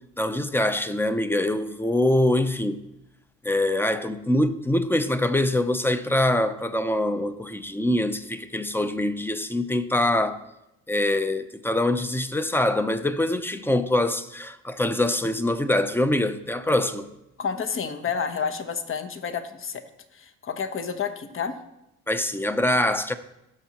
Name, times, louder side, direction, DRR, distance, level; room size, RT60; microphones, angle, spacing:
voice 1, 0.2-2.8 3.4-10.4 10.9-17.1 22.1-23.1, left 1 dB, 5° left, 0.6 m, -24 dB
voice 2, 17.4-19.8 20.1-21.5, left 6 dB, 45° left, 1.0 m, -30 dB
16.5 x 6.3 x 3.0 m
cardioid pair, 90°, 30 cm